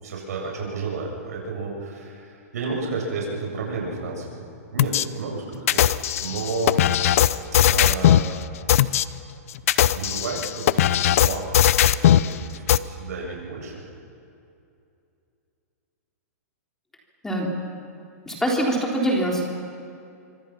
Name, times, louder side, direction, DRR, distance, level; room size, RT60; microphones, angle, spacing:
voice 1, 0.0-6.8 7.6-8.3 9.9-13.8, right 3 dB, 75° right, -1 dB, 7.6 m, -32 dB
sound 1, 4.8-5.1 5.7-8.3 8.7-9.0 9.6-12.3 12.7-12.8, left 11 dB, 60° left, 0.7 m, -18 dB
voice 2, 18.3-19.4, right 1 dB, 5° left, -1 dB, 3.5 m, -23 dB
25.0 x 25.0 x 5.9 m, 2.6 s
hypercardioid pair, 150°, 9 cm